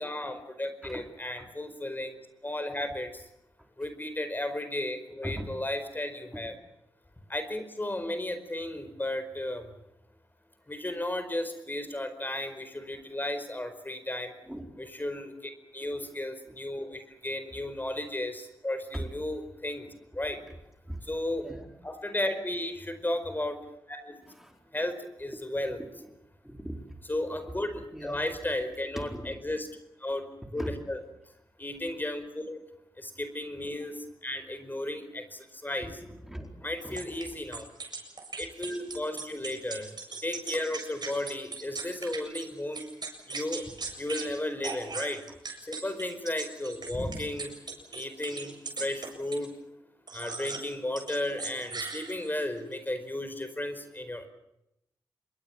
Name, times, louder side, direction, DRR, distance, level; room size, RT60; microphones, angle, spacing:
voice 1, 0.0-3.3 3.8-6.5 7.3-9.7 10.7-14.3 14.8-20.4 21.1-21.5 21.8-23.6 23.9-24.1 24.7-25.8 27.1-29.7 30.0-30.2 30.5-31.0 31.6-32.6 33.0-35.9 36.6-37.6 38.4-39.9 40.2-42.9 43.3-43.6 44.0-45.2 45.6-47.5 47.9-49.5 50.1-54.3, left 1 dB, 20° left, 10 dB, 4.9 m, -34 dB
voice 2, 5.2-5.6 6.3-6.5 14.5-14.7 15.8-16.1 18.9-19.1 20.2-20.3 20.9-21.1 21.4-21.7 24.2-24.6 25.8-26.2 26.4-26.8 27.5-28.2 29.0-29.3 30.5-30.8 33.6-33.7 35.9-37.4 39.1-39.2 45.3-45.4, right 1 dB, 5° right, 3 dB, 4.5 m, -40 dB
sound 1, 37.0-42.5 42.7-44.3 44.6-49.5 50.1-50.7 51.0-52.4, right 4 dB, 55° right, 7.5 m, -39 dB
27.0 x 22.0 x 7.4 m, 0.83 s
supercardioid pair, 45°, 9 cm